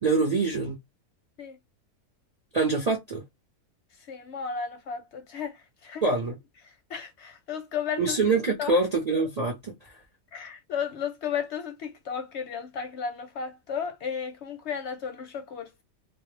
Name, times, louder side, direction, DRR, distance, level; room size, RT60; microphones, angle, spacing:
voice 1, 0.0-0.8 2.5-3.2 6.0-6.4 8.0-9.9, right 3 dB, 50° right, 0.4 m, -25 dB
voice 2, 4.1-6.0 6.6-8.2 8.6-8.8 10.3-15.8, left 7 dB, 65° left, 0.7 m, -34 dB
2.2 x 2.1 x 3.0 m
omnidirectional pair, 1.5 m